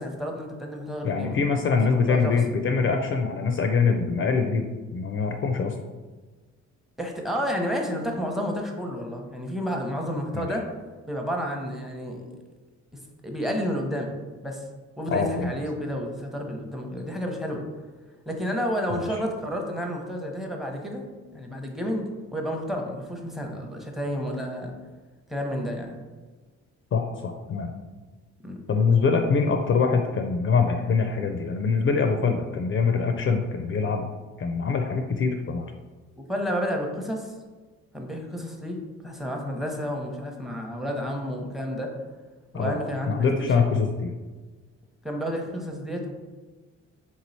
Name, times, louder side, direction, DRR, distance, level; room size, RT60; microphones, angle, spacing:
voice 1, 0.0-1.4 1.6-2.3 7.0-10.7 11.1-12.2 13.2-14.2 14.4-14.6 15.0-17.6 18.3-21.1 21.3-24.7 25.3-26.0 28.4-28.6 36.2-37.3 37.9-38.8 39.0-41.9 42.5-43.6 45.0-46.1, equal, ahead, 1 dB, 0.8 m, -31 dB
voice 2, 1.0-4.6 4.9-5.7 10.3-10.5 15.1-15.5 18.9-19.1 26.9-27.7 28.7-34.1 34.4-35.7 42.5-42.8 43.1-44.1, left 5 dB, 40° left, 5 dB, 0.4 m, -24 dB
3.7 x 3.0 x 4.0 m, 1.3 s
cardioid pair, 90°, 30 cm